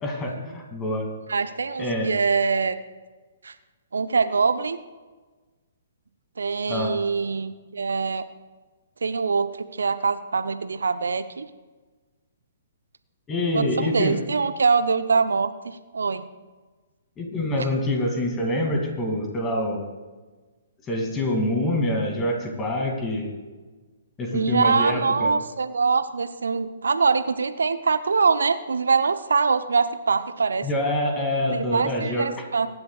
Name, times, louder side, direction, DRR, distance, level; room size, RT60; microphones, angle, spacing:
voice 1, 0.0-1.1 1.8-2.1 6.7-6.9 13.3-14.2 17.2-19.9 20.9-23.3 24.2-25.3 30.6-32.4, left 1 dB, 15° left, 1 dB, 2.4 m, -26 dB
voice 2, 1.3-2.8 3.4-3.5 3.9-4.8 6.4-8.3 9.0-11.5 13.5-16.2 24.3-30.7 31.5-32.7, right 5 dB, 65° right, 12 dB, 0.6 m, -23 dB
23.0 x 10.5 x 2.4 m, 1.3 s
figure-of-eight pair, 120°, 0 cm